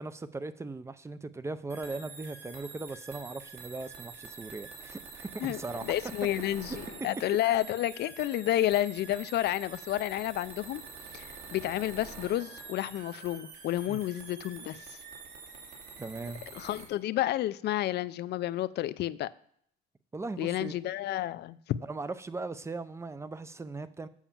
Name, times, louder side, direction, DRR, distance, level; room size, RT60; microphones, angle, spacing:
voice 1, 0.0-5.9 13.9-14.0 16.0-16.4 20.1-20.8 21.8-24.1, right 3 dB, 15° right, 14 dB, 0.5 m, -39 dB
sound 1, 1.7-16.9, right 4 dB, 65° right, 2.4 m, -46 dB
voice 2, 5.4-10.8 11.1-15.0 16.5-19.3 20.4-21.8, left 13 dB, 60° left, 16 dB, 0.5 m, -31 dB
7.2 x 5.6 x 7.2 m, 0.65 s
cardioid pair, 115°, 19 cm